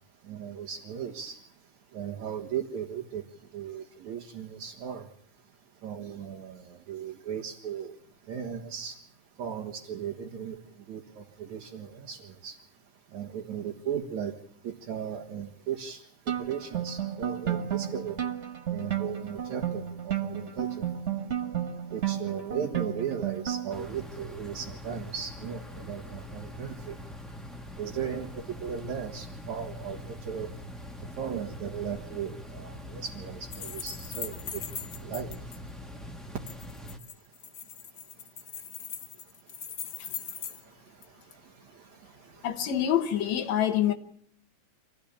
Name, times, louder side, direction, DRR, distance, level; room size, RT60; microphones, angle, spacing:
voice 1, 0.2-1.4 1.9-3.3 3.5-5.1 5.8-7.9 8.3-9.0 9.4-10.6 10.9-12.6 13.1-14.3 14.6-16.0 16.4-18.2 18.7-20.8 21.9-27.0 27.8-30.5 31.2-34.6 35.0-35.4 41.8-42.5, right 8 dB, 70° right, 3.0 m, -37 dB
sound 1, 16.3-23.9, right 9 dB, 50° right, 0.8 m, -32 dB
sound 2, 23.7-37.0, left 1 dB, ahead, 1.0 m, -43 dB
sound 3, 33.5-35.6 36.5-40.6 41.0-41.1, left 8 dB, 90° left, 0.8 m, -40 dB
voice 2, 42.4-43.9, left 10 dB, 70° left, 2.4 m, -26 dB
26.5 x 16.0 x 8.7 m
omnidirectional pair, 3.4 m